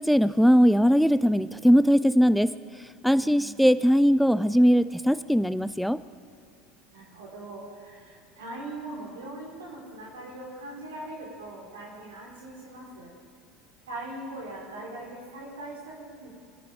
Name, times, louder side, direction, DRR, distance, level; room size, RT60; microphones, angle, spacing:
voice 1, 0.0-2.5 3.0-6.0, equal, ahead, 15 dB, 0.6 m, -20 dB
voice 2, 3.2-3.5 6.9-13.1 13.9-16.3, right 2 dB, 90° right, -3 dB, 4.3 m, -41 dB
22.5 x 11.0 x 5.2 m, 2.3 s
hypercardioid pair, 85°, 0 cm